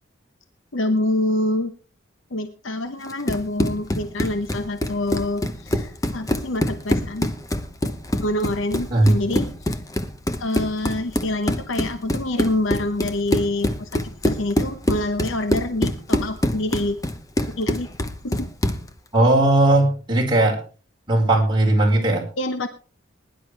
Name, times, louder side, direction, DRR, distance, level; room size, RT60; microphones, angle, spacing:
voice 1, 0.7-1.7 2.3-7.3 8.2-9.8 10.4-17.0 17.6-17.9 18.2-18.5 22.4-22.7, left 1 dB, 75° left, 9 dB, 1.0 m, -26 dB
Run, 3.1-18.9, left 1 dB, 15° left, 0.9 m, -25 dB
voice 2, 19.1-20.6 21.1-22.2, right 2 dB, 25° right, -3 dB, 4.9 m, -17 dB
21.0 x 11.0 x 3.4 m, 0.38 s
head